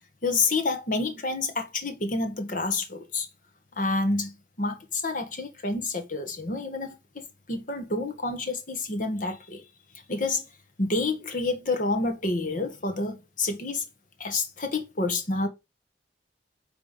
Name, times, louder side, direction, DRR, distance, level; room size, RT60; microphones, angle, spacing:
voice 1, 0.2-3.3 3.8-9.6 10.1-10.4 10.8-13.8 14.2-15.5, left 3 dB, 45° left, 1.5 m, -28 dB
9.6 x 3.5 x 5.2 m
head